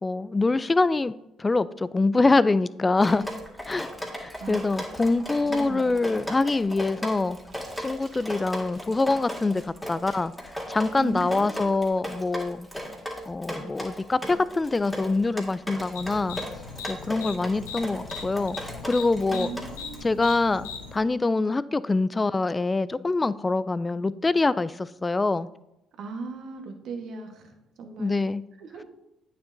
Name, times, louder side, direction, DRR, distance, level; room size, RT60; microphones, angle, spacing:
voice 1, 0.0-1.1 1.4-3.2 3.7-3.9 4.2-7.4 7.8-10.3 10.7-12.7 13.3-16.4 16.9-19.5 20.0-25.5 28.0-28.4, left 3 dB, 25° left, 18 dB, 0.3 m, -25 dB
Drip, 3.0-20.0, equal, 10° left, 1.9 m, -36 dB
voice 2, 4.4-6.2 11.0-11.8 19.3-20.1 26.0-28.3 28.6-28.8, right 4 dB, 65° right, 4 dB, 1.2 m, -38 dB
Crumpling crinkling, 5.9-13.0, right 2 dB, 35° right, 2.0 m, -56 dB
sound 1, 15.9-21.0, left 5 dB, 90° left, 0.6 m, -39 dB
8.9 x 6.7 x 2.6 m, 0.89 s
hypercardioid pair, 55°, 0 cm